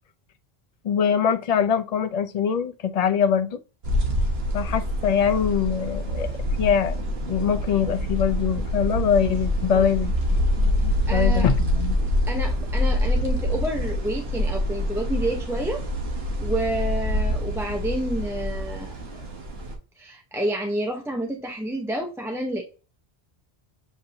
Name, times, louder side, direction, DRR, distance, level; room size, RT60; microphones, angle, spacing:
voice 1, 0.8-3.6 4.5-6.3 6.6-7.0 7.2-10.1 10.6-12.0, left 7 dB, 50° left, 0.5 m, -23 dB
sound 1, 3.8-19.8, left 1 dB, 70° right, 1.4 m, -25 dB
voice 2, 11.1-11.5 12.3-15.8 16.4-19.0 20.0-22.6, right 1 dB, 5° right, 0.5 m, -29 dB
7.2 x 2.6 x 2.7 m
omnidirectional pair, 1.1 m